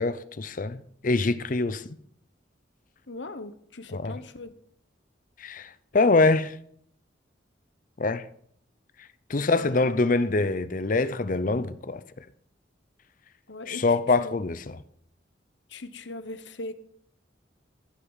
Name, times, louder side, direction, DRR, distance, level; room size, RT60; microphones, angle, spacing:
voice 1, 0.0-2.0 3.9-4.1 5.4-6.6 8.0-8.2 9.3-12.0 13.7-14.8, left 3 dB, 45° left, 0.6 m, -24 dB
voice 2, 3.1-4.5 9.4-9.9 13.5-13.8 14.2-14.4 15.7-16.7, left 2 dB, 70° left, 1.1 m, -39 dB
15.5 x 6.9 x 7.3 m
head